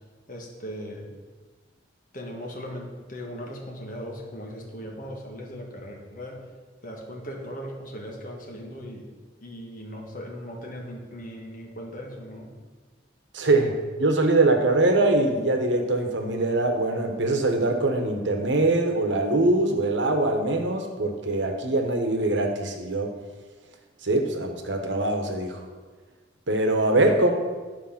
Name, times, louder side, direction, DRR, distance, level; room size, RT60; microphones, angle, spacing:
voice 1, 0.3-1.1 2.1-6.4 6.8-9.1 9.4-12.5, equal, 45° left, 0 dB, 1.5 m, -38 dB
voice 2, 13.3-23.1 24.0-25.6 26.5-27.3, right 2 dB, 80° right, 4 dB, 1.1 m, -23 dB
10.5 x 4.7 x 5.8 m, 1.4 s
head